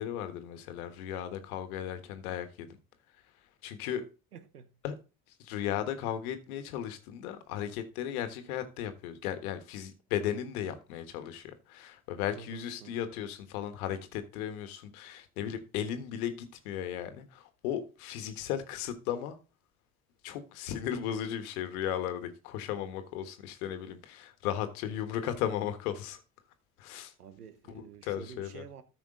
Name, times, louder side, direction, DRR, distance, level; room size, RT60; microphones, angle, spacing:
voice 1, 0.0-2.5 3.6-4.1 4.8-4.9 5.4-19.4 20.2-26.2 26.8-27.1 28.0-28.6, left 10 dB, 70° left, 1.5 m, -36 dB
voice 2, 4.3-4.7 12.3-13.1 27.2-28.8, right 7 dB, 90° right, 1.0 m, -49 dB
13.5 x 5.8 x 3.8 m
hypercardioid pair, 60°, 45 cm